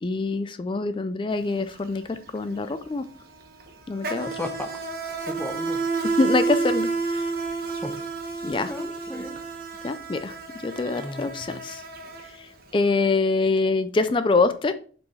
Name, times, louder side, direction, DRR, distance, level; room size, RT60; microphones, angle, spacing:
voice 1, 0.0-3.0 3.9-4.4 6.2-7.2 8.4-8.7 9.8-10.3 10.6-11.8 12.7-14.7, left 3 dB, 25° left, 11 dB, 0.3 m, -25 dB
Insect, 1.3-1.5 1.8-12.8, right 4 dB, 50° right, 1.0 m, -30 dB
voice 2, 5.2-5.8 7.8-7.9 8.6-9.3 11.0-11.6, left 1 dB, 10° left, 3 dB, 0.7 m, -34 dB
6.8 x 4.4 x 3.2 m, 0.42 s
head